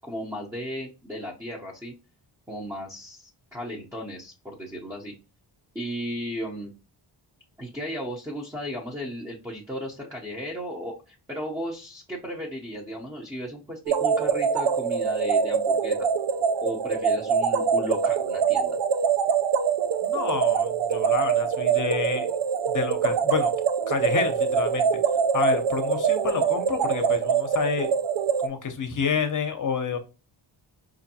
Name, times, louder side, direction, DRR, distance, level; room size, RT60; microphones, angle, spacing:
voice 1, 0.0-1.9 2.5-5.1 5.7-6.7 7.6-16.1 16.6-18.8, equal, 5° right, -2 dB, 0.6 m, -35 dB
sound 1, 13.9-28.5, right 7 dB, 65° right, 0.6 m, -24 dB
voice 2, 20.0-22.3 22.7-23.5 23.9-24.9 25.3-27.9 28.4-30.0, left 6 dB, 40° left, 8 dB, 0.7 m, -28 dB
4.9 x 2.6 x 2.7 m, 0.31 s
wide cardioid pair, 105°, 48 cm